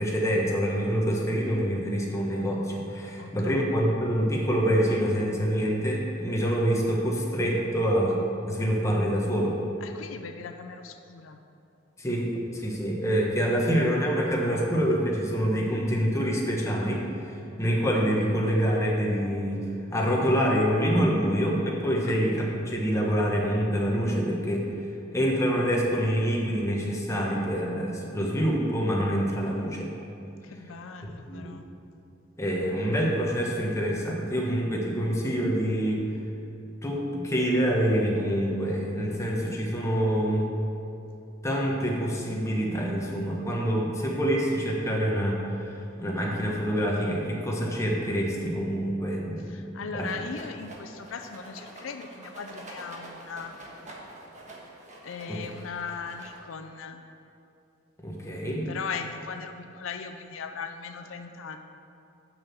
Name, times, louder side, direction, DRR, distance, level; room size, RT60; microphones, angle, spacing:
voice 1, 0.0-9.6 12.0-19.6 19.9-24.7 25.1-29.9 31.3-31.6 32.4-36.0 36.8-40.5 41.4-49.6 49.9-50.1 55.3-55.4 58.0-58.6, equal, 15° left, -2 dB, 1.2 m, -26 dB
voice 2, 3.2-3.7 9.8-11.4 22.1-22.2 30.4-31.7 49.4-53.5 55.0-57.0 58.7-61.6, left 5 dB, 90° left, 7 dB, 0.5 m, -38 dB
Rattle, 50.0-56.7, right 1 dB, 40° right, 1.4 m, -46 dB
6.2 x 6.2 x 7.4 m, 2.6 s
head